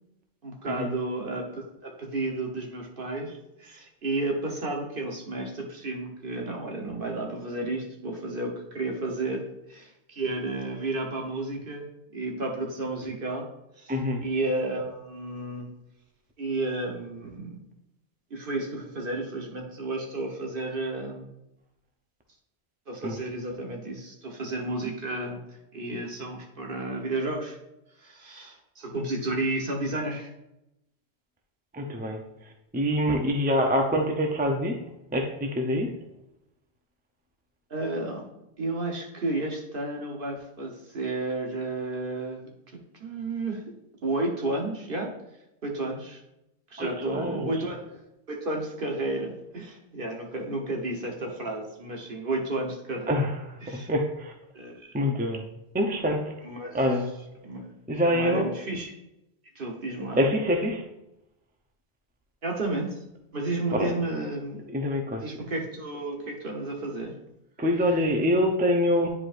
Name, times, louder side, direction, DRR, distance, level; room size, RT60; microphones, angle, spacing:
voice 1, 0.4-11.9 12.1-13.5 13.8-13.9 14.2-15.7 16.4-17.6 18.3-21.3 22.9-25.4 25.7-27.6 28.0-30.3 37.7-38.2 38.6-43.6 44.0-45.1 45.6-46.2 46.7-48.0 48.3-53.2 53.6-53.9 54.5-55.0 56.4-56.8 57.4-57.7 58.0-58.9 59.5-60.2 62.4-63.0 63.3-64.7 65.2-67.1, right 2 dB, 55° right, 1 dB, 1.3 m, -32 dB
voice 2, 13.9-14.2 23.0-23.2 31.7-34.8 35.1-35.9 46.8-47.5 53.1-54.3 54.9-55.5 55.7-56.3 56.7-57.1 57.9-58.5 60.1-60.9 63.7-63.9 64.7-65.2 67.6-69.1, equal, 10° right, 3 dB, 0.6 m, -25 dB
9.9 x 4.8 x 2.5 m, 0.89 s
omnidirectional pair, 1.1 m